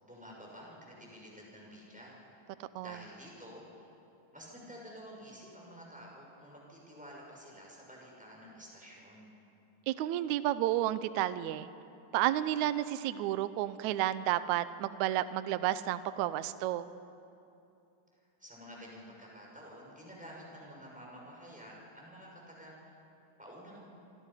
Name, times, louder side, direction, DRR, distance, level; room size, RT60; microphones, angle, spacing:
voice 1, 0.0-3.9 4.3-9.3 18.2-22.9 23.4-23.9, equal, ahead, -3 dB, 6.0 m, -51 dB
voice 2, 9.9-11.7 12.1-16.9, right 13 dB, 75° right, 14 dB, 1.8 m, -31 dB
27.0 x 25.5 x 5.7 m, 2.8 s
omnidirectional pair, 4.0 m